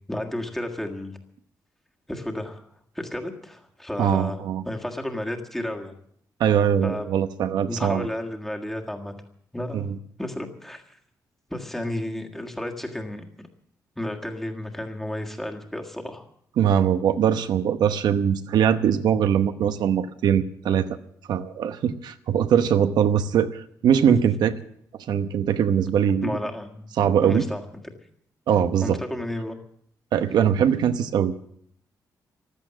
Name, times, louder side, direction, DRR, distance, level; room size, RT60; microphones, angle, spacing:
voice 1, 0.1-1.2 2.1-2.6 2.9-4.4 4.6-5.9 6.8-7.1 7.7-9.1 9.5-9.9 10.2-11.0 11.5-13.2 14.0-16.3 24.1-24.2 26.2-26.9 27.2-27.8 28.8-29.6, left 1 dB, 5° left, 2 dB, 1.7 m, -32 dB
voice 2, 4.0-4.6 6.4-8.1 9.7-9.9 16.6-20.9 21.3-24.5 25.1-26.3 27.0-27.4 28.5-29.0 30.1-31.3, right 8 dB, 85° right, 10 dB, 0.9 m, -21 dB
15.0 x 13.0 x 7.6 m, 0.67 s
wide cardioid pair, 180°, 7 cm